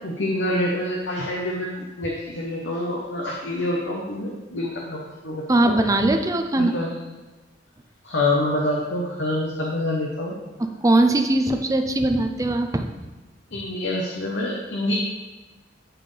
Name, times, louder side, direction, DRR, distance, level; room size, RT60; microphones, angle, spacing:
voice 1, 0.0-5.8 6.6-6.9 8.0-10.3 13.5-14.9, left 1 dB, 70° left, -2 dB, 0.9 m, -26 dB
voice 2, 5.5-6.8 10.8-12.8, right 2 dB, 20° right, 6 dB, 0.5 m, -20 dB
12.0 x 4.2 x 3.3 m, 1.2 s
head